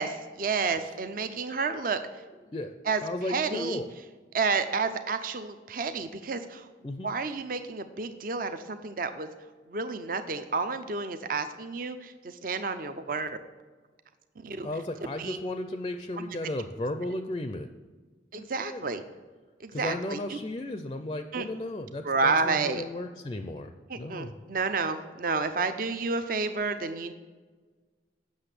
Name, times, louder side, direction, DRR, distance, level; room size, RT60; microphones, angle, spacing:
voice 1, 0.0-2.0 2.9-3.0 3.3-3.8 4.3-6.7 7.0-9.3 9.7-13.4 14.4-14.7 15.2-15.4 16.2-16.4 18.3-19.0 19.6-20.4 21.3-21.4 22.0-22.8 23.9-27.1, right 4 dB, 50° right, 9 dB, 0.5 m, -30 dB
voice 2, 3.0-3.9 6.8-7.1 14.6-17.7 18.3-18.8 19.7-24.4, left 1 dB, 25° left, 7 dB, 0.4 m, -35 dB
7.9 x 6.4 x 6.7 m, 1.4 s
head